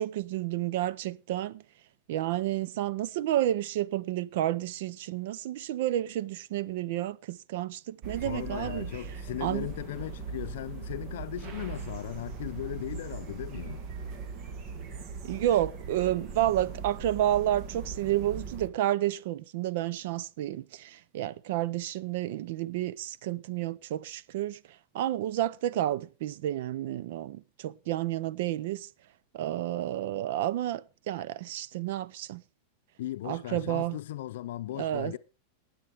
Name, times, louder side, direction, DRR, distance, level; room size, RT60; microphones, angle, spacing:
voice 1, 0.0-1.6 2.1-8.9 9.4-9.7 15.2-24.6 24.9-28.9 29.3-32.4 33.3-34.0 34.8-35.1, right 13 dB, 65° right, 0.6 m, -30 dB
sound 1, 8.0-18.7, right 5 dB, 40° right, 1.3 m, -40 dB
voice 2, 8.2-13.9 33.0-35.2, left 14 dB, 75° left, 0.6 m, -37 dB
20.0 x 8.7 x 3.5 m
supercardioid pair, 150°, 0 cm